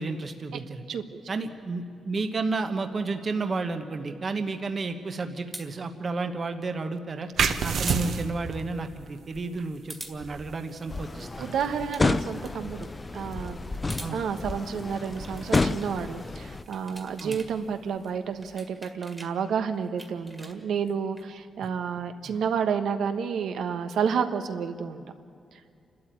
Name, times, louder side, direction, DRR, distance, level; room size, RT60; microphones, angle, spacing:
voice 1, 0.0-0.8 1.3-7.3 7.6-11.6 14.0-14.2 17.2-17.4 21.6-21.7 22.2-22.4, right 3 dB, 30° right, 7 dB, 1.0 m, -32 dB
voice 2, 0.9-1.2 11.4-12.9 13.1-13.6 14.1-25.0 25.5-25.6, right 7 dB, 80° right, 8 dB, 1.3 m, -30 dB
sound 1, 5.5-5.7 7.9-8.1 8.4-8.5 9.9-10.2 11.7-12.0 12.4-12.5 13.7-14.1 15.2-15.9 16.5-17.5 17.8-19.3 19.7-21.2, right 1 dB, 10° right, 1.9 m, -42 dB
sound 2, 7.4-18.6, right 6 dB, 55° right, 1.2 m, -35 dB
sound 3, 10.9-16.6, left 3 dB, 20° left, 0.5 m, -30 dB
29.0 x 13.0 x 9.2 m, 2.4 s
wide cardioid pair, 175°, 0 cm